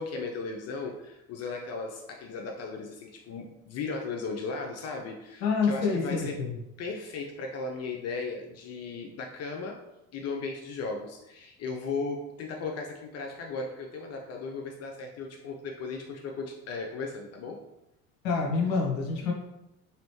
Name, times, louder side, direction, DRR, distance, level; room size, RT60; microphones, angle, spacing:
voice 1, 0.0-6.4 6.8-9.8 10.1-17.6, left 4 dB, 35° left, 1 dB, 0.5 m, -36 dB
voice 2, 5.4-6.6 18.2-19.3, left 4 dB, 60° left, 1 dB, 0.8 m, -27 dB
3.1 x 3.0 x 3.0 m, 0.92 s
figure-of-eight pair, 65°, 43 cm